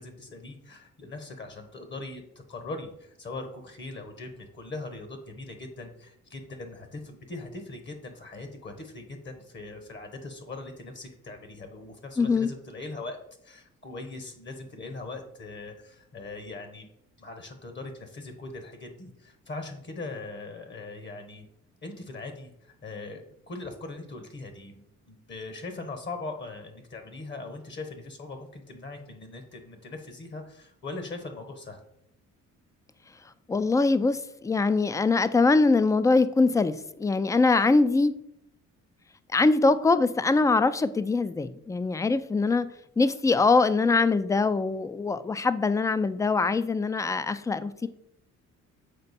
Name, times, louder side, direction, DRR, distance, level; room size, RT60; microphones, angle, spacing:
voice 1, 0.0-16.9 17.2-21.4 21.8-31.8, left 3 dB, 40° left, 6 dB, 1.0 m, -40 dB
voice 2, 12.2-12.5 33.5-38.1 39.3-42.7 43.0-47.9, left 3 dB, 10° left, 14 dB, 0.3 m, -23 dB
6.6 x 4.4 x 4.1 m, 0.78 s
cardioid pair, 90°, 30 cm